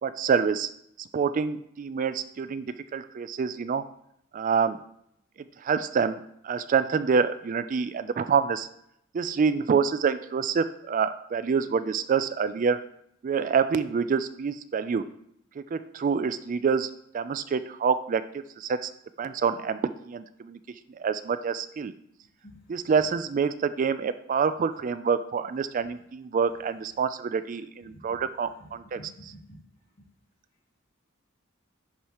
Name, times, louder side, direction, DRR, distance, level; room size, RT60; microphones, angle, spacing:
voice 1, 0.0-0.7 1.1-2.7 2.9-3.8 4.3-4.8 5.6-8.7 9.1-12.8 13.2-15.0 15.6-18.9 19.2-19.8 20.1-20.6 21.0-21.9 22.7-29.0, right 6 dB, 40° right, 12 dB, 0.3 m, -27 dB
voice 2, 27.8-28.2 28.6-29.6, equal, 50° left, -2 dB, 2.3 m, -49 dB
11.0 x 4.8 x 3.0 m, 0.74 s
head